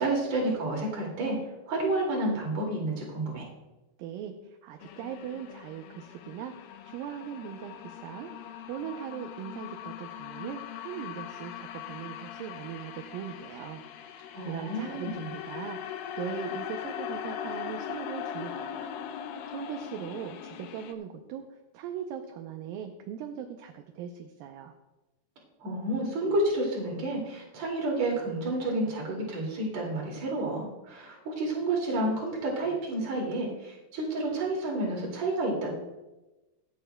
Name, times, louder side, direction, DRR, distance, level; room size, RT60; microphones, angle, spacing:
voice 1, 0.0-1.4 1.7-3.5 14.3-15.3 25.6-35.7, right 2 dB, 50° right, -2 dB, 3.4 m, -30 dB
voice 2, 4.0-18.9 19.5-24.7, right 8 dB, 75° right, 5 dB, 2.2 m, -40 dB
sound 1, 4.8-20.9, left 9 dB, 80° left, 2.3 m, -40 dB
24.5 x 8.7 x 2.2 m, 1.1 s
omnidirectional pair, 4.4 m